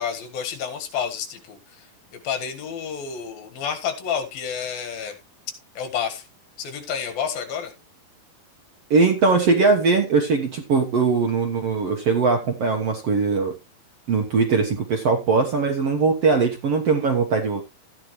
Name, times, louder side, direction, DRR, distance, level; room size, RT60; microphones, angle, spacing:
voice 1, 0.0-5.2 5.7-6.3 6.6-7.7, left 7 dB, 70° left, 7 dB, 3.4 m, -30 dB
voice 2, 8.9-13.5 14.1-17.6, right 4 dB, 60° right, 3 dB, 1.6 m, -20 dB
13.5 x 9.6 x 3.1 m, 0.25 s
omnidirectional pair, 4.4 m